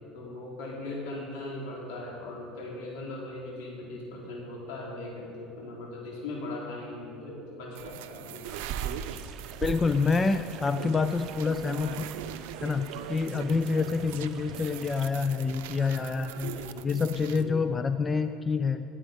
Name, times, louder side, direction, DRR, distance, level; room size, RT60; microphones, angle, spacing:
voice 1, 0.1-8.6 13.2-13.7 16.4-17.0 17.3-17.6, left 2 dB, 80° left, -3 dB, 3.9 m, -39 dB
sound 1, 7.7-17.4, right 11 dB, 85° right, 0.6 m, -42 dB
sound 2, 8.4-15.1, right 7 dB, 45° right, 0.9 m, -42 dB
voice 2, 9.6-12.1 12.6-16.5 16.8-18.8, left 4 dB, 20° left, 10 dB, 0.4 m, -27 dB
18.0 x 8.7 x 5.3 m, 2.7 s
supercardioid pair, 125°, 0 cm